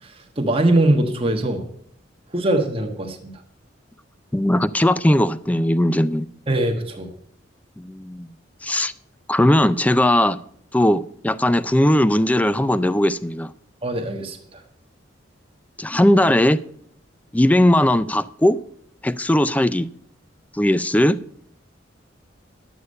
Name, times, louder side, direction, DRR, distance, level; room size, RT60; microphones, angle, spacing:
voice 1, 0.0-1.6 2.3-3.3 6.5-7.1 13.8-14.6, right 1 dB, 30° right, 1.4 m, -22 dB
voice 2, 4.3-6.3 7.8-8.3 8.6-8.9 9.3-10.4 10.7-13.5 15.8-16.6 17.3-18.6 19.0-19.9 20.5-21.2, left 1 dB, 10° left, 0.4 m, -18 dB
11.5 x 8.0 x 5.4 m
head